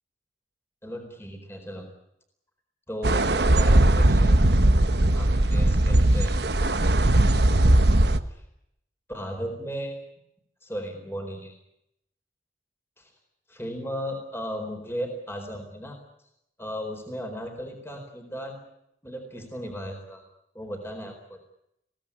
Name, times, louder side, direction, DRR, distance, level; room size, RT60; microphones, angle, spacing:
voice 1, 0.8-1.9 2.9-4.5 5.1-6.8 9.1-10.0 10.6-11.5 13.0-13.1 13.5-16.0 16.6-18.6 19.0-20.2 20.5-21.4, equal, 15° left, 3 dB, 4.3 m, -36 dB
sound 1, 3.0-8.2, right 1 dB, 60° right, 1.2 m, -19 dB
23.0 x 17.5 x 9.9 m, 0.79 s
head